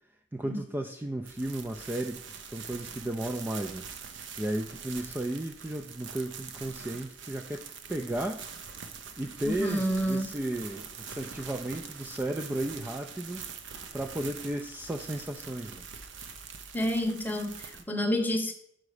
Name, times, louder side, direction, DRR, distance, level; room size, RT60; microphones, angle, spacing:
voice 1, 0.3-8.4 9.2-13.5 13.9-15.8, right 1 dB, 10° right, 4 dB, 0.3 m, -34 dB
sound 1, 1.3-17.8, right 6 dB, 70° right, 0.7 m, -44 dB
voice 2, 9.4-10.2 16.7-18.5, equal, 10° left, 4 dB, 0.8 m, -29 dB
5.8 x 5.2 x 4.8 m, 0.71 s
head